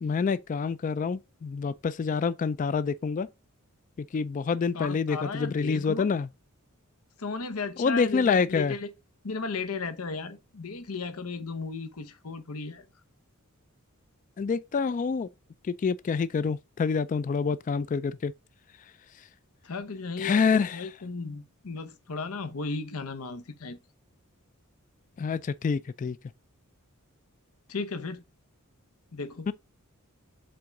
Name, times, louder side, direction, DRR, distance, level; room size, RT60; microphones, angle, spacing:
voice 1, 0.0-3.3 4.0-6.3 7.8-8.8 14.4-15.3 15.7-18.3 20.2-20.9 25.2-26.2 29.5-29.6, left 5 dB, 35° left, 0.3 m, -27 dB
voice 2, 4.7-6.2 7.2-8.9 9.2-12.9 19.6-23.8 27.7-28.2 29.1-29.5, left 4 dB, 85° left, 0.9 m, -35 dB
7.7 x 3.5 x 3.8 m
head